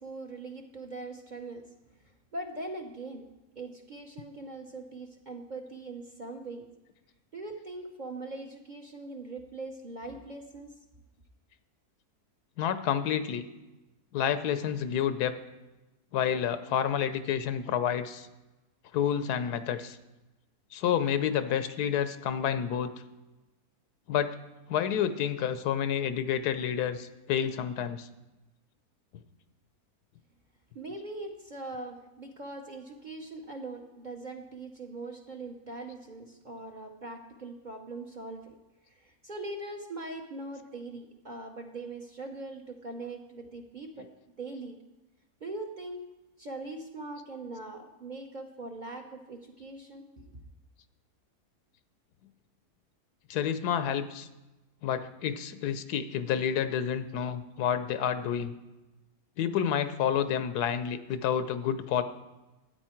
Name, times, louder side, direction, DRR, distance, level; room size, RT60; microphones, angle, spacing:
voice 1, 0.0-1.6 2.0-3.3 3.6-6.7 7.3-10.7 30.7-38.5 38.9-44.1 44.4-44.8 45.4-46.0 46.4-50.4, right 2 dB, 40° right, 3 dB, 0.7 m, -41 dB
voice 2, 12.6-13.4 14.1-15.3 16.1-18.3 18.9-20.0 20.7-22.9 24.1-24.3 24.7-28.1 44.0-44.1 53.3-54.3 54.8-58.6 59.4-62.0, left 9 dB, 90° left, 11 dB, 1.3 m, -29 dB
12.5 x 9.0 x 4.4 m, 1.1 s
omnidirectional pair, 1.6 m